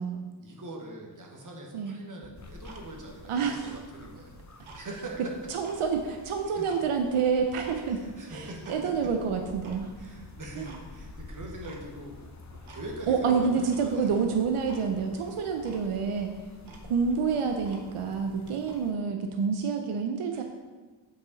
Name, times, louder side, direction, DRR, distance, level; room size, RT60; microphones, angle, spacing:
voice 1, 0.4-5.5 6.6-6.7 7.9-9.1 10.0-14.1 16.5-16.9 20.3-20.4, right 1 dB, 40° right, 0 dB, 1.3 m, -43 dB
Tick-tock, 2.2-3.2 3.5-4.9 5.3-6.8 7.2-7.8 8.3-8.8 9.1-9.2 9.6-9.8 10.2-10.3 10.6-11.1 11.4-12.1 12.3-13.1 13.6-14.2 14.7-14.9 15.2-15.3 15.6-15.9 16.3-16.4 16.6-18.1 18.6-18.8, right 3 dB, 70° right, 1.1 m, -51 dB
sound 1, 2.3-18.9, left 3 dB, 35° left, 0.8 m, -49 dB
voice 2, 3.3-3.6 5.5-8.0 8.3-9.9 10.6-10.7 13.1-16.3 16.8-20.4, right 5 dB, 85° right, 4 dB, 0.7 m, -28 dB
8.0 x 4.9 x 4.0 m, 1.3 s
wide cardioid pair, 120°, 49 cm